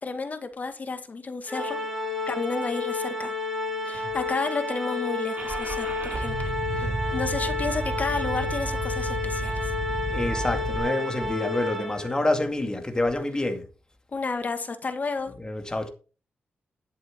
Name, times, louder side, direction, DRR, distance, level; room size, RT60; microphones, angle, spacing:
voice 1, 0.0-1.8 2.3-3.3 3.8-9.7 14.1-15.3, left 4 dB, 45° left, 2.0 m, -31 dB
Organ, 1.5-12.4, left 2 dB, 10° right, 4.2 m, -31 dB
Car / Engine starting, 5.4-10.8, right 1 dB, 50° right, 3.8 m, -32 dB
voice 2, 10.1-13.6 15.4-15.9, left 2 dB, 20° left, 2.2 m, -27 dB
11.5 x 7.9 x 4.5 m
cardioid pair, 75°, 4 cm